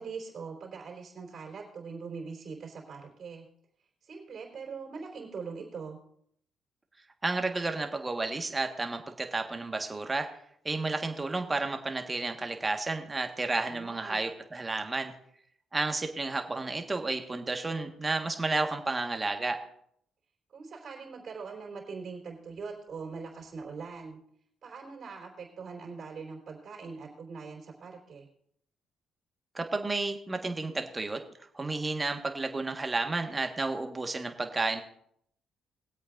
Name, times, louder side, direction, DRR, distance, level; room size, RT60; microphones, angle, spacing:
voice 1, 0.0-3.5 4.0-6.0 13.7-14.2 20.5-24.2 24.6-28.3, right 5 dB, 55° right, 0 dB, 3.8 m, -42 dB
voice 2, 7.2-10.3 10.6-15.1 15.7-19.6 29.5-31.2 31.5-34.8, right 3 dB, 25° right, 5 dB, 1.5 m, -31 dB
21.5 x 8.2 x 2.6 m, 0.68 s
hypercardioid pair, 50°, 0 cm